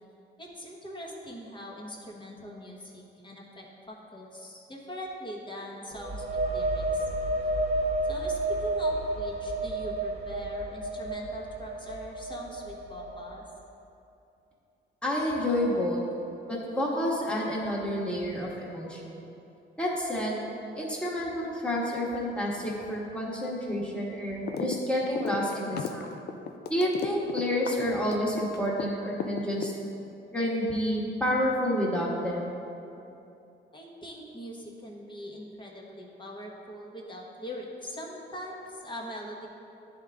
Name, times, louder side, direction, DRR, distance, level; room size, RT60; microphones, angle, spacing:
voice 1, 0.4-7.0 8.1-13.4 33.7-39.5, equal, 25° left, -2 dB, 1.2 m, -42 dB
sound 1, 5.9-13.5, right 2 dB, 30° right, 0.9 m, -31 dB
voice 2, 15.0-16.0 16.5-19.2 19.8-20.4 20.7-26.1 26.7-29.7 30.3-32.5, equal, 5° left, -5 dB, 1.5 m, -29 dB
sound 2, 24.5-24.8 25.0-28.9 29.2-30.1, left 7 dB, 55° left, 0.5 m, -34 dB
10.5 x 3.7 x 3.4 m, 2.8 s
cardioid pair, 90°, 20 cm